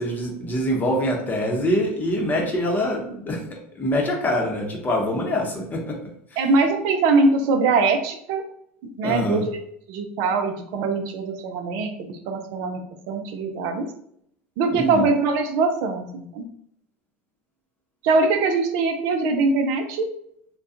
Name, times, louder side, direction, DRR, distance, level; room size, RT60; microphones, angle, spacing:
voice 1, 0.0-3.4 3.7-6.0 6.3-6.4 9.0-9.4 14.7-15.1, equal, 25° left, 0 dB, 0.8 m, -24 dB
voice 2, 6.4-8.4 9.0-9.6 9.9-13.9 14.6-16.4 18.0-20.1, right 3 dB, 65° right, 5 dB, 0.4 m, -22 dB
2.3 x 2.2 x 2.7 m, 0.68 s
hypercardioid pair, 80°, 7 cm